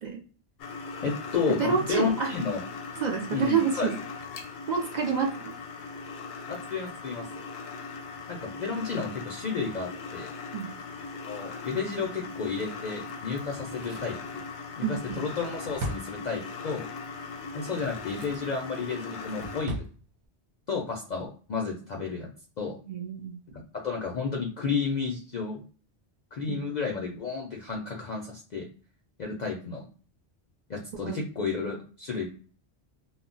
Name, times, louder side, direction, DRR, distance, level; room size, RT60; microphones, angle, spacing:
sound 1, 0.6-19.7, left 4 dB, 85° left, 0.9 m, -39 dB
voice 1, 1.0-2.6 3.3-3.9 6.5-7.4 8.3-10.3 11.3-14.4 14.8-16.9 17.5-19.9 20.7-22.3 22.6-22.8 23.8-25.6 26.3-28.7 29.2-29.9 30.7-32.3, left 5 dB, 55° left, -1 dB, 0.5 m, -32 dB
voice 2, 1.6-2.3 3.0-3.9 4.7-5.5 10.5-10.7 14.8-15.2 22.9-23.3 26.5-26.6 31.0-31.2, right 6 dB, 60° right, 2 dB, 0.5 m, -28 dB
Drawer open or close, 13.4-16.7 17.6-18.5 18.9-19.9 20.2-20.3, right 1 dB, 80° right, 0.9 m, -40 dB
2.2 x 2.0 x 3.7 m, 0.40 s
omnidirectional pair, 1.1 m